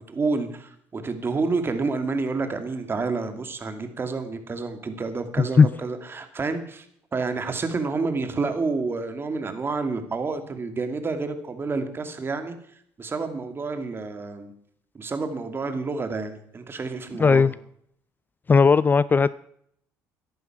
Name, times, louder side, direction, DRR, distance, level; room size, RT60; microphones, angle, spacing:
voice 1, 0.0-6.9 7.1-12.6 13.0-14.5 14.9-17.5, right 4 dB, 30° right, 2.6 m, -29 dB
voice 2, 17.2-17.5 18.5-19.3, left 5 dB, 25° left, 0.4 m, -16 dB
14.0 x 11.0 x 6.1 m
supercardioid pair, 80°, 7 cm